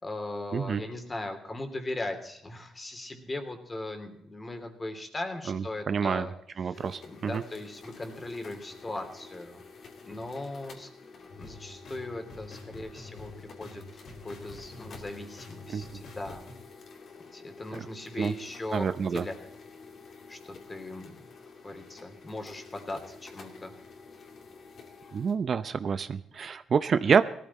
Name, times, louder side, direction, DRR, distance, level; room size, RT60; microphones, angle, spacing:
voice 1, 0.0-6.3 6.6-6.8 7.1-9.6 10.0-10.9 11.4-13.8 14.2-16.4 17.3-19.3 20.3-21.2 21.6-23.7, left 2 dB, 25° left, 6 dB, 2.9 m, -38 dB
voice 2, 0.5-0.8 5.5-6.3 6.6-7.4 15.7-16.0 18.2-18.3 18.7-19.3 25.1-27.2, right 6 dB, 50° right, 13 dB, 0.7 m, -27 dB
sound 1, 6.7-25.4, left 4 dB, 55° left, 2.8 m, -50 dB
sound 2, 11.3-16.5, left 2 dB, 70° left, 5.2 m, -47 dB
18.0 x 14.0 x 4.2 m, 0.75 s
cardioid pair, 90°, 0 cm